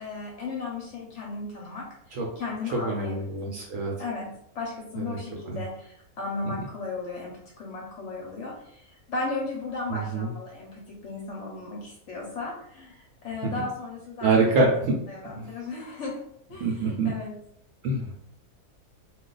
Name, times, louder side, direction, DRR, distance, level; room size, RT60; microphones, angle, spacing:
voice 1, 0.0-3.7 4.0-14.5 14.7-16.2 16.5-17.4, left 3 dB, 60° left, -2 dB, 0.8 m, -36 dB
voice 2, 2.7-3.9 5.0-5.2 5.5-5.6 9.9-10.3 14.2-15.0 15.3-15.5 16.6-17.1 17.8-18.1, right 3 dB, 65° right, -1 dB, 0.8 m, -25 dB
2.4 x 2.3 x 3.7 m, 0.72 s
omnidirectional pair, 1.7 m